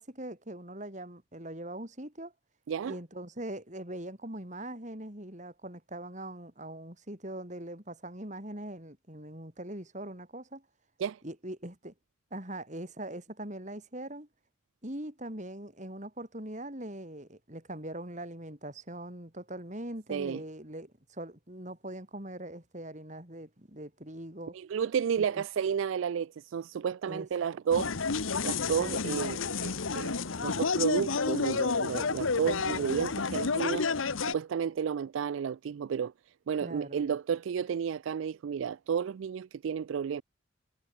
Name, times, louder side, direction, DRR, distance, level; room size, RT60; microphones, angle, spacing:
voice 1, 0.0-2.3 2.8-10.6 11.2-11.9 12.3-14.3 14.8-24.5 25.2-25.4 27.1-27.3 36.6-37.0, right 1 dB, 35° right, 4.2 m, -41 dB
voice 2, 20.1-20.4 24.5-27.9 28.4-36.1 36.5-40.2, right 7 dB, 75° right, 0.3 m, -32 dB
Puji Market in Kunming, 27.7-34.3, left 4 dB, 80° left, 1.1 m, -30 dB
head